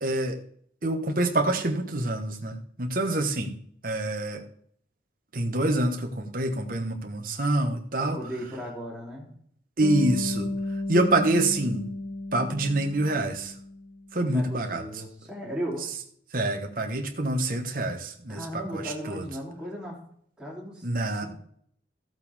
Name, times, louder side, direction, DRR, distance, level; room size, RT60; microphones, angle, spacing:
voice 1, 0.0-0.4 0.8-3.5 3.8-4.4 5.3-8.2 9.8-10.5 10.9-11.9 12.3-13.5 14.1-14.8 16.3-19.3 20.8-21.3, right 2 dB, 50° right, 4 dB, 1.3 m, -26 dB
voice 2, 8.0-9.3 14.2-15.9 18.3-20.0 20.4-21.3, equal, 5° right, -5 dB, 3.3 m, -36 dB
Bass guitar, 9.8-14.1, left 2 dB, 75° left, 2.0 m, -33 dB
14.5 x 8.0 x 3.6 m, 0.64 s
head